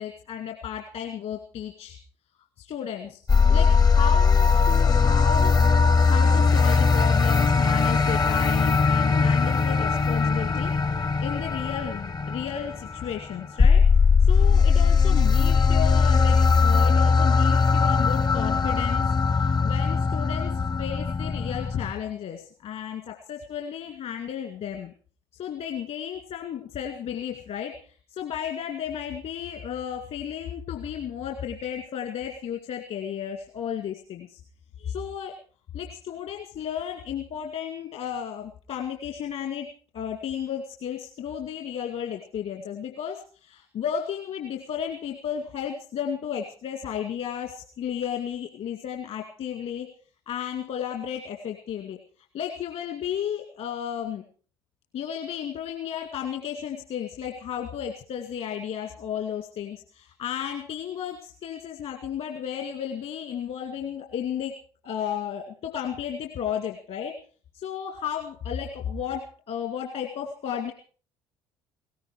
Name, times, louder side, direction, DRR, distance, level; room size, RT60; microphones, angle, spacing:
voice 1, 0.0-2.0 2.6-3.2 3.5-5.7 6.0-24.9 25.4-34.4 34.8-35.4 35.7-39.7 39.9-49.9 50.3-52.0 52.3-54.2 54.9-64.6 64.8-67.1 67.5-70.7, left 9 dB, 60° left, 4 dB, 2.0 m, -33 dB
sound 1, 3.3-21.9, left 5 dB, 30° left, 0.7 m, -20 dB
17.5 x 15.5 x 4.8 m, 0.42 s
figure-of-eight pair, 55°, 14 cm